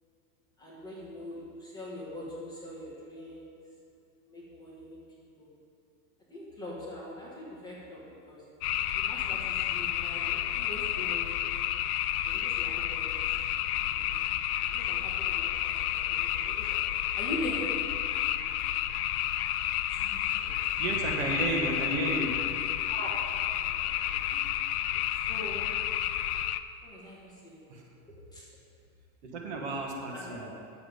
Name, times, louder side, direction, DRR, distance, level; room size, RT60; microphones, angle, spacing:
voice 1, 0.6-3.5 4.3-5.0 5.4-5.5 6.3-8.4 8.9-11.5 12.2-13.2 13.8-14.1 14.7-16.8 17.1-17.7 19.9-21.2 21.7-21.8 22.8-23.1 23.6-24.1 25.2-25.7 26.8-27.6 28.3-28.4 30.1-30.4, left 1 dB, 10° left, -7 dB, 1.4 m, -42 dB
sound 1, 8.6-26.6, left 12 dB, 75° left, 0.6 m, -30 dB
voice 2, 20.8-22.3 24.3-24.4 27.7-27.9 29.2-30.5, right 2 dB, 45° right, 0 dB, 1.6 m, -32 dB
9.9 x 7.7 x 5.1 m, 2.5 s
supercardioid pair, 170°, 45 cm